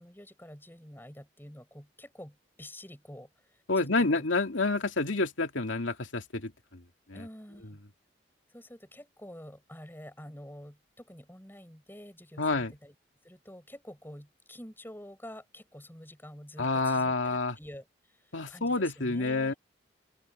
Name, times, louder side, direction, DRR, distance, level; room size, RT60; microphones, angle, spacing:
voice 1, 0.0-4.3 7.1-7.8 8.5-12.9 13.2-19.6, equal, 10° left, 7.4 m, -48 dB
voice 2, 3.7-6.8 7.1-7.2 12.4-12.7 16.6-17.6 18.3-19.5, left 3 dB, 80° left, 2.4 m, -28 dB
open air
head